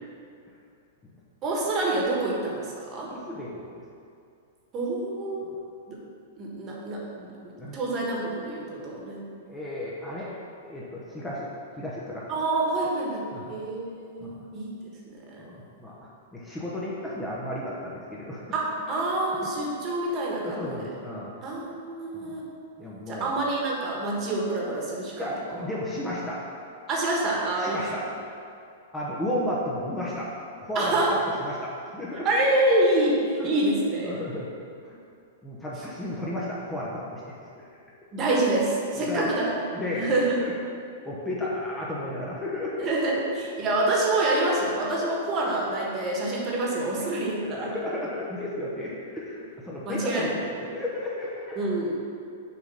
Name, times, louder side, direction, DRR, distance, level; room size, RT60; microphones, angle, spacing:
voice 1, 1.4-3.1 4.7-5.4 5.9-6.0 6.4-7.3 7.7-9.4 12.3-14.7 15.1-15.4 18.5-20.8 21.4-22.4 23.1-25.6 26.9-27.8 30.7-31.1 32.2-33.1 33.4-34.1 38.1-39.5 40.0-40.4 42.8-43.1 43.6-47.7 49.9-50.3 51.6-52.0, right 2 dB, 30° right, -3 dB, 1.4 m, -27 dB
voice 2, 3.1-3.8 5.4-5.5 7.6-7.8 9.5-10.3 10.6-11.5 11.8-12.3 13.3-13.5 14.2-14.4 15.4-18.4 20.4-21.3 22.1-22.4 22.8-23.3 25.2-26.4 27.6-28.0 28.9-30.3 30.6-32.3 33.4-33.5 34.0-34.5 34.8-35.0 35.4-37.7 38.9-39.3 39.7-40.1 40.4-40.5 41.0-42.9 45.0-45.1 47.0-47.1 47.4-51.7, left 1 dB, 10° left, -6 dB, 0.8 m, -33 dB
6.8 x 3.6 x 5.4 m, 2.5 s
hypercardioid pair, 145°, 0 cm